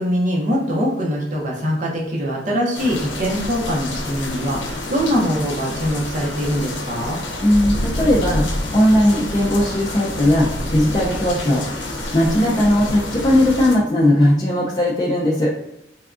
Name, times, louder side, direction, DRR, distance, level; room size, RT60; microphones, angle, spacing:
voice 1, 0.0-7.2, equal, 45° right, -3 dB, 0.7 m, -22 dB
sound 1, 2.7-13.8, left 1 dB, 80° left, 0.6 m, -28 dB
voice 2, 7.4-8.4 8.7-15.5, left 1 dB, 25° left, -6 dB, 0.4 m, -18 dB
3.4 x 2.2 x 2.4 m, 0.87 s
head